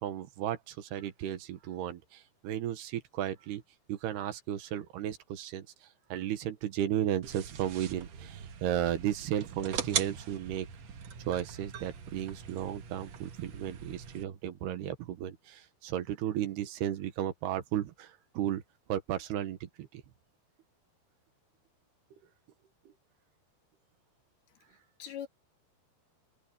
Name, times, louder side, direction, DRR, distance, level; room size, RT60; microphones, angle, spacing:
voice 1, 0.0-3.6 3.9-5.7 6.1-10.7 11.3-18.6 18.9-20.0, right 11 dB, 80° right, 3.4 m, -34 dB
sound 1, 7.2-14.2, right 8 dB, 55° right, 2.2 m, -40 dB
voice 2, 24.5-25.3, left 9 dB, 75° left, 3.9 m, -44 dB
omnidirectional pair, 4.7 m